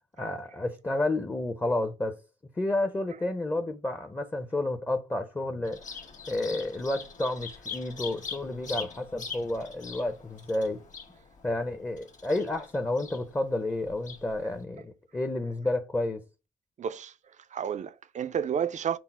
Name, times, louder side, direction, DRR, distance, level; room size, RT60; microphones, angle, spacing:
voice 1, 0.2-2.2 2.6-5.8 6.3-10.8 11.4-16.2, left 2 dB, 15° left, 0.6 m, -30 dB
Bird vocalization bird call bird song, 5.6-14.6, left 6 dB, 40° left, 1.2 m, -43 dB
voice 2, 16.8-17.1 17.5-19.0, right 8 dB, 40° right, 0.4 m, -31 dB
5.9 x 2.0 x 4.2 m
cardioid pair, 90°, 20 cm